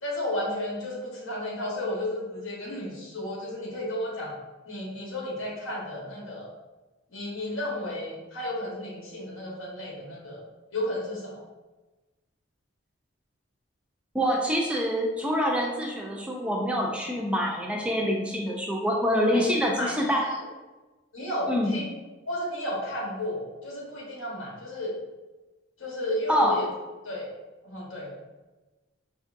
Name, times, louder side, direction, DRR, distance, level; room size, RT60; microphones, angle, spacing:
voice 1, 0.0-4.3 4.7-6.5 7.1-10.4 10.7-11.4 19.1-19.9 20.2-20.5 21.1-21.9 22.3-24.9 25.8-26.7 27.0-27.3 27.6-28.1, left 1 dB, 85° left, -3 dB, 1.1 m, -33 dB
voice 2, 14.1-20.3 21.5-21.8 26.3-26.6, equal, 5° right, -1 dB, 0.3 m, -26 dB
4.4 x 2.6 x 2.5 m, 1.2 s
head